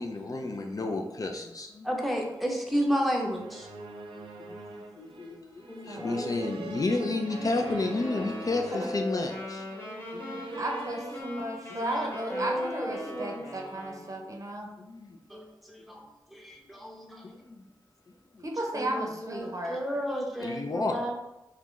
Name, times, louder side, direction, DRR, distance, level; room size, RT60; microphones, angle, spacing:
voice 1, 0.0-2.0 4.1-9.7 10.1-10.5 11.7-11.8 13.7-14.0 14.8-15.2 17.2-17.6 18.3-18.5 20.4-21.1, left 2 dB, 45° left, 3 dB, 0.4 m, -32 dB
voice 2, 1.8-3.7 5.7-6.5 12.3-13.4 15.3-15.4 15.7-16.0 16.3-17.3 18.7-21.1, equal, ahead, 0 dB, 0.7 m, -32 dB
sound 1, 3.3-11.2, right 3 dB, 90° right, 0.4 m, -43 dB
voice 3, 5.9-6.6 10.6-14.7 18.4-19.8, right 1 dB, 40° right, 1 dB, 0.7 m, -34 dB
Wind instrument woodwind instrument, 7.3-14.2, left 2 dB, 25° left, 1.1 m, -40 dB
3.0 x 2.3 x 3.7 m, 0.95 s
cardioid pair, 55°, 9 cm